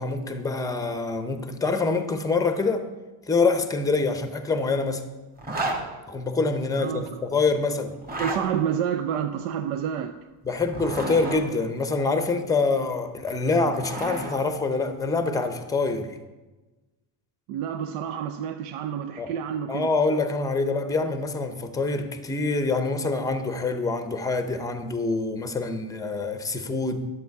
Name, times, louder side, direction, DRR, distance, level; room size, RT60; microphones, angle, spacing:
voice 1, 0.0-2.9 3.3-5.0 6.1-7.9 10.4-16.2 19.2-19.3 19.7-27.1, left 3 dB, 5° left, 0.6 m, -25 dB
Zipper (clothing), 5.4-5.8 7.9-8.4 10.5-11.4 13.3-14.4, right 2 dB, 20° right, 1.6 m, -31 dB
voice 2, 6.8-7.2 8.2-10.2 17.5-19.9, right 8 dB, 80° right, 0.7 m, -29 dB
10.5 x 7.7 x 4.7 m
cardioid pair, 135°, 49 cm